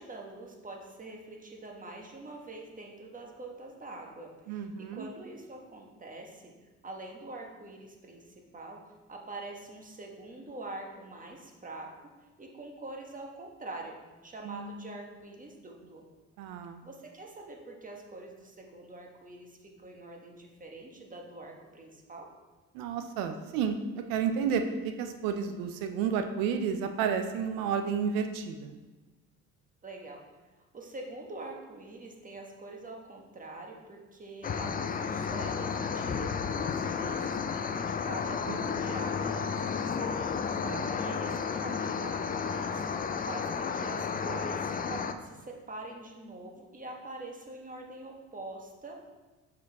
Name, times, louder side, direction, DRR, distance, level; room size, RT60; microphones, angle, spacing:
voice 1, 0.0-6.5 6.8-8.8 9.1-12.1 12.4-16.1 16.8-22.3 29.8-30.2 30.7-42.8 43.2-49.1, right 2 dB, 25° right, 1 dB, 1.3 m, -45 dB
voice 2, 4.5-5.1 14.5-14.7 16.4-16.8 22.7-28.7 38.5-38.8 40.6-40.9, right 7 dB, 80° right, 7 dB, 0.6 m, -31 dB
sound 1, 34.4-45.1, left 6 dB, 25° left, 0.4 m, -32 dB
6.3 x 4.8 x 3.5 m, 1.2 s
supercardioid pair, 65°, 34 cm